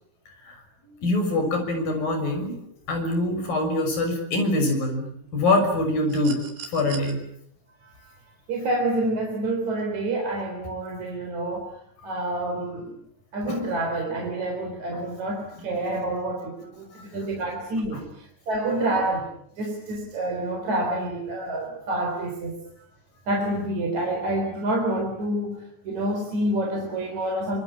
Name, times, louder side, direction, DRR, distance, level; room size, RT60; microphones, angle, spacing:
voice 1, 0.4-2.6 2.9-6.4 6.7-7.2 13.5-13.6 14.9-15.0 16.9-17.0 17.9-18.0, left 2 dB, 50° left, 5 dB, 7.9 m, -25 dB
sound 1, 6.1-7.1 8.6-8.8, right 7 dB, 65° right, 5.2 m, -40 dB
voice 2, 7.8-8.1 8.5-11.8 12.0-12.9 13.3-19.3 19.5-22.6 23.3-27.6, right 1 dB, 40° right, 1 dB, 4.7 m, -28 dB
26.0 x 25.0 x 9.0 m, 0.69 s
omnidirectional pair, 5.3 m